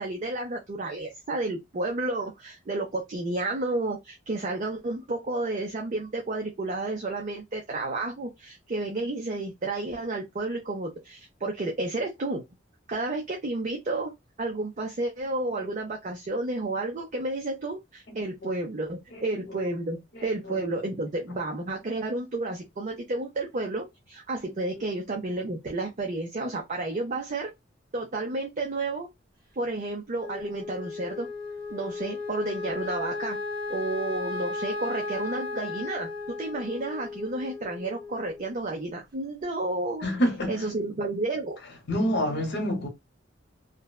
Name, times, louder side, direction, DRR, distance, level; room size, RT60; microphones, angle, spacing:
voice 1, 0.0-12.4 12.9-14.1 14.4-27.5 27.9-29.1 29.6-31.3 31.7-33.4 33.7-36.1 36.4-40.1 40.5-41.6, right 2 dB, 40° right, 0.5 m, -31 dB
Wind instrument woodwind instrument, 30.2-38.6, left 3 dB, 20° right, 1.3 m, -35 dB
voice 2, 40.0-40.7 41.9-42.9, equal, 60° left, 0.9 m, -27 dB
2.6 x 2.2 x 2.2 m
head